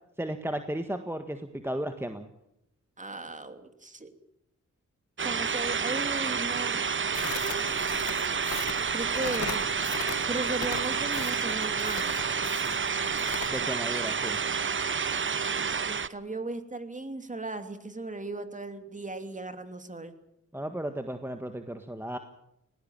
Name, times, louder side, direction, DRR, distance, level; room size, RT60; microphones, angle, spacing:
voice 1, 0.2-2.3 13.5-14.4 20.5-22.2, right 1 dB, 10° right, 7 dB, 1.6 m, -34 dB
voice 2, 3.0-4.1 5.2-6.9 7.4-8.0 8.9-9.7 10.3-12.1 15.8-20.1, right 2 dB, 25° right, 8 dB, 2.9 m, -37 dB
sound 1, 5.2-16.1, right 6 dB, 40° right, 1.0 m, -29 dB
Crackle, 7.1-13.5, left 7 dB, 75° left, 2.4 m, -40 dB
19.5 x 18.0 x 8.9 m, 0.80 s
cardioid pair, 75°, 29 cm